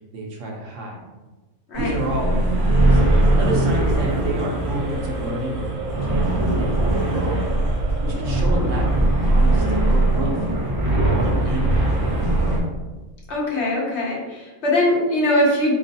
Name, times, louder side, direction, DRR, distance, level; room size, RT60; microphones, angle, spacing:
voice 1, 0.1-1.0 1.8-3.0 3.3-5.7 6.0-7.4 8.0-10.4 10.9-12.2, right 1 dB, 65° right, -1 dB, 1.0 m, -30 dB
sound 1, 1.7-12.6, right 1 dB, 40° right, 0.3 m, -20 dB
sound 2, 1.9-10.7, right 2 dB, 90° right, 1.1 m, -33 dB
voice 2, 13.3-15.8, left 1 dB, 60° left, -3 dB, 1.0 m, -21 dB
4.1 x 3.0 x 2.7 m, 1.2 s
omnidirectional pair, 1.4 m